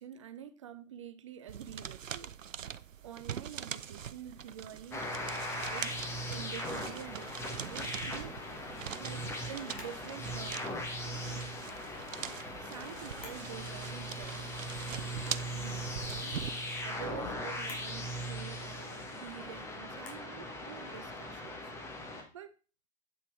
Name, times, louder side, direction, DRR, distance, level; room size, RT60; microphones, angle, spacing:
voice 1, 0.0-2.4 3.0-8.4 8.9-11.3 12.6-14.5 14.9-15.3 15.5-16.4 16.8-21.7 22.3-22.6, right 9 dB, 25° right, 0.5 m, -48 dB
sound 1, 1.5-16.5, right 8 dB, 75° right, 0.6 m, -43 dB
sound 2, 4.9-22.2, left 1 dB, 5° left, 1.2 m, -39 dB
Camera, 9.6-10.0 11.7-12.1 13.0-13.5 13.9-14.0 15.1-15.5 17.5-17.9 19.9-20.3, left 3 dB, 50° left, 3.5 m, -50 dB
8.6 x 5.9 x 4.6 m
figure-of-eight pair, 120°, 39 cm